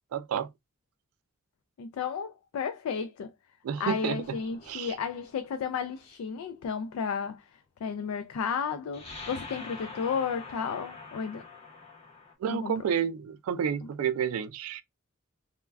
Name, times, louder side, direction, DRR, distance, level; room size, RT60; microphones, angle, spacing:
voice 1, 0.1-0.5 3.6-4.4 4.7-5.0 12.4-14.8, right 8 dB, 85° right, 0.3 m, -30 dB
voice 2, 1.8-3.3 3.8-7.5 7.8-11.4 12.5-12.7, left 6 dB, 85° left, 0.3 m, -33 dB
sound 1, 4.1-6.0 8.9-12.3, left 3 dB, 30° left, 0.8 m, -45 dB
2.3 x 2.1 x 3.3 m
head